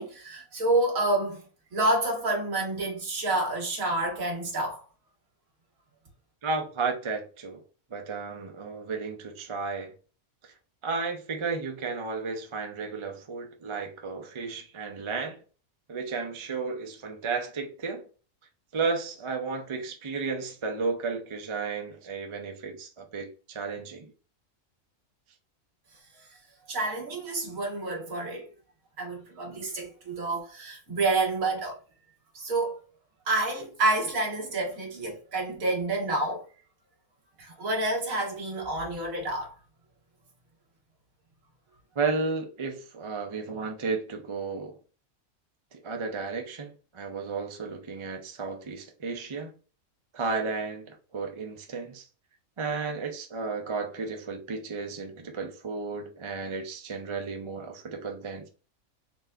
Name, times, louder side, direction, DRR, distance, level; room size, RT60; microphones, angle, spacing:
voice 1, 0.0-1.4 1.7-4.8 26.7-28.5 29.0-31.8 32.4-32.8 33.3-36.4 37.4-39.6, right 2 dB, 75° right, 1.8 m, -28 dB
voice 2, 6.4-7.6 7.9-9.9 10.4-10.5 10.8-15.4 15.9-18.1 18.7-24.1 42.0-44.8 45.7-49.5 50.1-52.1 52.6-58.5, right 4 dB, 35° right, 0.5 m, -33 dB
4.1 x 3.3 x 2.4 m
omnidirectional pair, 1.5 m